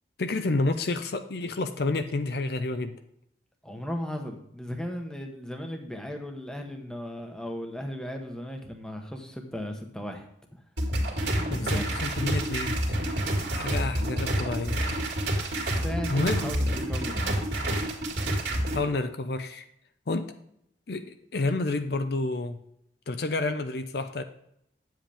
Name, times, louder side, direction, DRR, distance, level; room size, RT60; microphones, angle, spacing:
voice 1, 0.2-3.0 11.5-13.0 13.5-14.8 15.4-15.8 16.1-16.6 18.7-19.6 20.1-20.3 20.9-22.6 23.1-24.2, left 2 dB, 55° left, 8 dB, 0.6 m, -29 dB
voice 2, 3.6-10.6 11.3-11.9 15.6-17.4, equal, 5° left, 3 dB, 1.0 m, -36 dB
sound 1, 10.8-18.8, right 1 dB, 65° right, 2.2 m, -28 dB
9.1 x 7.6 x 3.4 m, 0.73 s
head